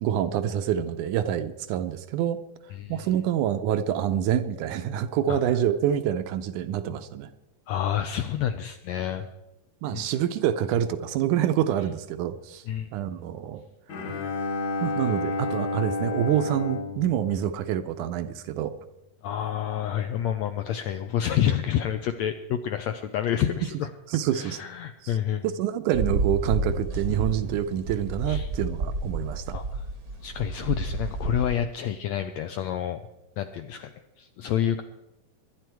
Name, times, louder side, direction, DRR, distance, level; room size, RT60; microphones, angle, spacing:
voice 1, 0.0-2.4 2.9-7.3 9.8-12.6 12.9-13.6 14.8-18.7 24.1-24.6 25.0-25.2 25.4-29.6, right 10 dB, 75° right, 10 dB, 2.0 m, -26 dB
voice 2, 2.7-3.1 5.3-5.4 7.7-9.3 9.9-10.1 12.7-12.9 19.2-23.9 24.3-25.4 28.3-28.5 29.5-29.8 30.2-33.1 33.4-34.8, left 10 dB, 80° left, 8 dB, 1.6 m, -28 dB
Bowed string instrument, 13.9-18.2, left 2 dB, 60° left, 3.3 m, -31 dB
sound 1, 25.9-31.5, right 2 dB, 50° right, 1.1 m, -30 dB
23.0 x 10.5 x 4.6 m, 0.90 s
omnidirectional pair, 3.9 m